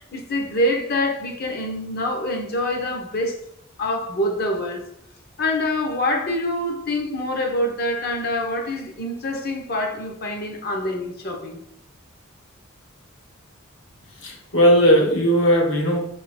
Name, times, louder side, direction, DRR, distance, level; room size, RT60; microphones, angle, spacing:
voice 1, 0.0-3.5 3.8-4.9 5.4-11.6, left 1 dB, 50° left, 1.0 m, -25 dB
voice 2, 14.2-16.0, equal, 65° left, 1.4 m, -17 dB
6.3 x 3.6 x 4.3 m
head